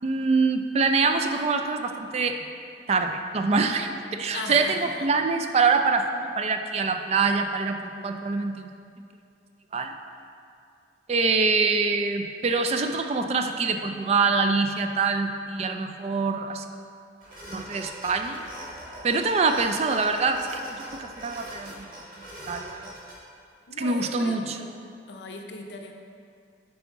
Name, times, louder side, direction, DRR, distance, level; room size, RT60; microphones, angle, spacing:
voice 1, 0.0-2.4 2.9-8.7 9.7-9.9 11.1-16.6 17.5-18.4 19.0-21.9 22.5-22.8 23.8-24.7, right 4 dB, 35° right, 6 dB, 0.3 m, -25 dB
voice 2, 4.3-5.1 23.7-24.4 25.1-25.9, left 2 dB, 75° left, 3 dB, 0.6 m, -37 dB
sound 1, 17.2-23.2, equal, 50° right, 1.5 m, -42 dB
7.3 x 4.8 x 3.6 m, 2.4 s
head